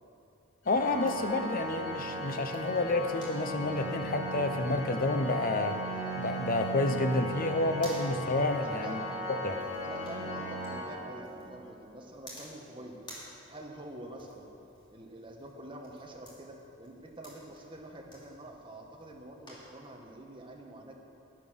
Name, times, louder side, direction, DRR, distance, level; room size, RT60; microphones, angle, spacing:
Organ, 0.7-11.6, right 1 dB, 80° left, 2.3 m, -37 dB
voice 1, 0.7-5.8 6.1-9.0 9.3-9.6, left 2 dB, 45° left, 7 dB, 0.7 m, -29 dB
sound 1, 0.7-20.0, equal, 25° left, 2.9 m, -55 dB
voice 2, 8.6-9.1 9.8-13.0 13.5-14.5 14.9-20.9, right 1 dB, 25° right, 1 dB, 1.3 m, -46 dB
10.5 x 10.5 x 6.3 m, 2.8 s
head